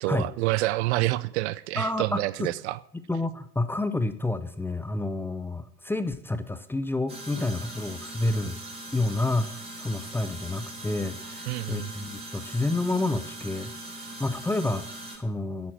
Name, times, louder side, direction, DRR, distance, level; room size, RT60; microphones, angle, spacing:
voice 1, 0.0-2.8 11.5-11.9, right 19 dB, 50° right, 0.7 m, -27 dB
voice 2, 1.8-2.5 3.1-8.6 8.9-13.7 14.2-15.7, left 2 dB, 5° left, 0.7 m, -29 dB
sound 1, 7.1-15.2, right 2 dB, 15° right, 5.0 m, -40 dB
11.0 x 8.9 x 7.5 m
hypercardioid pair, 95°, 43 cm